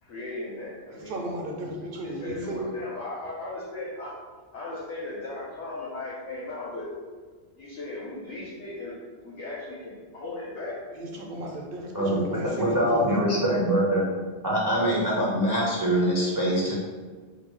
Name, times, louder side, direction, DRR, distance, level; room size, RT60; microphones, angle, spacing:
voice 1, 0.0-1.3 2.0-4.2 4.5-6.9 7.5-8.9 9.2-10.8, left 2 dB, 90° left, -7 dB, 1.1 m, -37 dB
voice 2, 1.1-2.8 11.0-13.2, right 1 dB, 60° right, 1 dB, 0.7 m, -34 dB
voice 3, 12.6-14.0 14.4-16.8, right 1 dB, 30° right, -6 dB, 0.4 m, -24 dB
4.2 x 2.2 x 3.0 m, 1.5 s
omnidirectional pair, 1.2 m